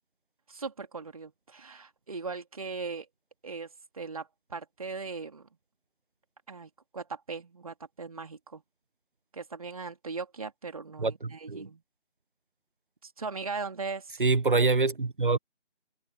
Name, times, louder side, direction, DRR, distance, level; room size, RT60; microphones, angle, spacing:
voice 1, 0.5-3.1 3.4-3.7 3.9-5.4 6.5-8.6 9.3-11.8 13.0-14.2, right 4 dB, 30° right, 3.0 m, -39 dB
voice 2, 11.0-11.7 14.2-15.4, right 3 dB, 50° right, 0.8 m, -25 dB
figure-of-eight pair, 165°, 34 cm